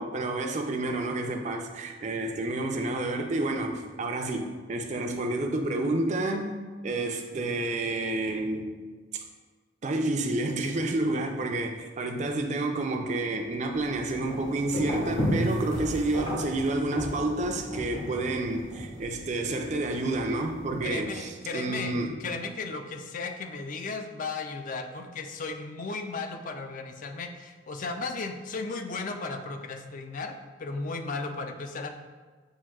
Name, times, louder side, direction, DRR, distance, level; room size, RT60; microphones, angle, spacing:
voice 1, 0.0-6.5 6.8-8.7 9.1-9.2 9.8-22.1, right 2 dB, 40° right, 4 dB, 0.4 m, -29 dB
sound 1, 13.7-20.9, equal, 75° left, 1.4 m, -34 dB
voice 2, 20.8-31.9, left 3 dB, 45° left, 6 dB, 0.3 m, -35 dB
7.3 x 2.6 x 2.3 m, 1.4 s
head